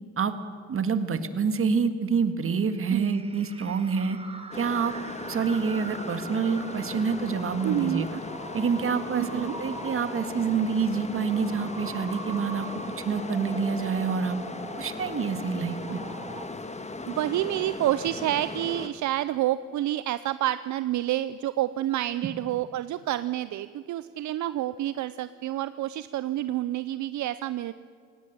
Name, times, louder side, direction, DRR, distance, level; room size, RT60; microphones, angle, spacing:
voice 1, 0.7-4.2 4.5-4.9 5.3-8.2 8.5-12.7 13.0-14.4 14.7-16.0, right 5 dB, 45° right, 10 dB, 1.8 m, -27 dB
sound 1, 2.6-16.4, right 3 dB, 20° right, 2.3 m, -43 dB
sound 2, 4.5-18.9, left 3 dB, 20° left, 1.6 m, -38 dB
voice 2, 7.6-8.0 9.2-9.5 17.1-27.7, right 14 dB, 70° right, 14 dB, 0.6 m, -28 dB
18.0 x 17.5 x 9.1 m, 2.2 s
cardioid pair, 90°, 30 cm